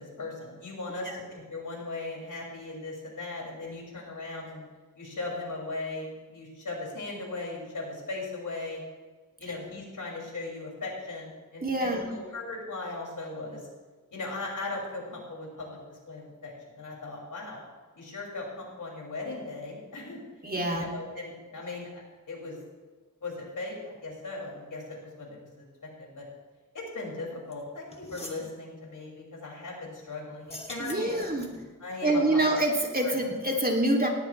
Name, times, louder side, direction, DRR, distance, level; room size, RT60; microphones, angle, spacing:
voice 1, 0.0-4.6 5.0-8.8 9.4-13.6 14.1-17.6 17.9-20.2 20.6-22.6 23.2-26.3 26.7-31.2 31.8-32.5 33.0-33.2, left 2 dB, 65° left, -3 dB, 6.3 m, -38 dB
voice 2, 11.6-12.1 20.4-20.9 30.8-31.5 32.0-34.1, right 1 dB, 25° right, 0 dB, 3.0 m, -26 dB
sound 1, 27.5-27.6 27.9-28.5 30.4-31.7, left 1 dB, 20° left, 2.8 m, -43 dB
18.0 x 17.5 x 3.4 m, 1.4 s
cardioid pair, 70°, 33 cm